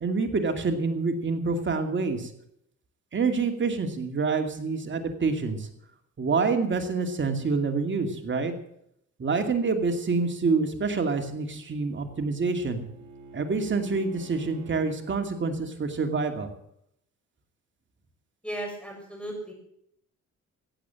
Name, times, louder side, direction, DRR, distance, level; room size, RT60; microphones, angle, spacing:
voice 1, 0.0-2.3 3.1-5.6 6.2-8.5 9.2-12.8 13.3-16.5, right 4 dB, 40° right, 5 dB, 2.5 m, -27 dB
Bowed string instrument, 11.2-15.1, right 4 dB, 75° right, 5.4 m, -47 dB
voice 2, 18.4-19.5, right 1 dB, 5° left, 1 dB, 6.7 m, -35 dB
15.5 x 8.8 x 7.5 m, 0.72 s
cardioid pair, 90°, 30 cm